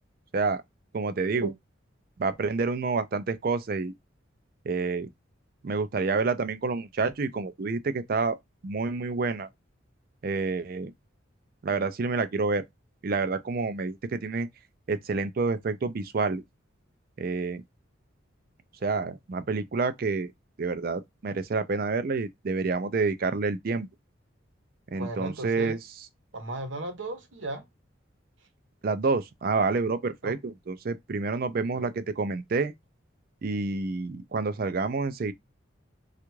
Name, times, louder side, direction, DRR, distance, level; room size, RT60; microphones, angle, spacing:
voice 1, 0.9-1.5 2.2-3.9 4.6-5.1 5.6-8.4 8.6-9.5 10.2-10.9 11.6-12.6 13.0-14.5 14.9-16.4 17.2-17.6 18.8-20.3 20.6-23.9 24.9-25.8 28.8-32.7 33.4-35.3, right 4 dB, 50° right, 0.4 m, -28 dB
voice 2, 24.9-25.8 26.3-27.6 30.2-30.4 31.8-31.9, right 2 dB, 75° right, 0.9 m, -35 dB
3.3 x 2.4 x 3.0 m
head